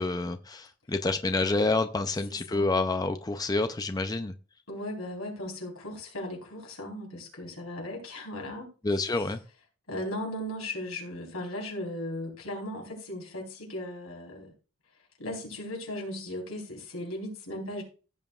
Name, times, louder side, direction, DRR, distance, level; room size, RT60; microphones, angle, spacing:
voice 1, 0.0-4.3 8.8-9.4, left 3 dB, 15° left, 0.4 m, -28 dB
voice 2, 2.3-2.8 4.7-8.7 9.2-9.3 9.9-14.5 15.2-17.8, left 1 dB, 80° left, 4.0 m, -37 dB
16.0 x 7.3 x 2.4 m
head